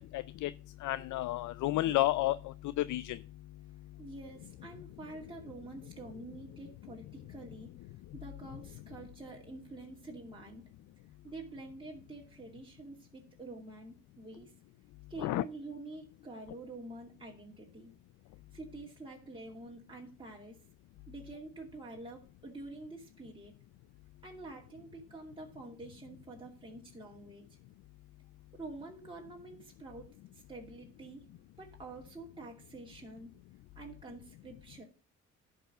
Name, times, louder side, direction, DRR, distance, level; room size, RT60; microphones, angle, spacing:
voice 1, 0.1-0.5 0.8-2.4 2.9-3.0 15.2-15.4, left 16 dB, 75° left, 0.5 m, -30 dB
voice 2, 4.0-10.6 11.2-14.5 15.1-17.9 18.5-20.6 21.1-23.5 24.2-27.5 28.5-31.3 31.6-33.3 33.8-34.8, right 2 dB, 15° right, 2.4 m, -47 dB
11.0 x 4.7 x 6.6 m
cardioid pair, 90°, 30 cm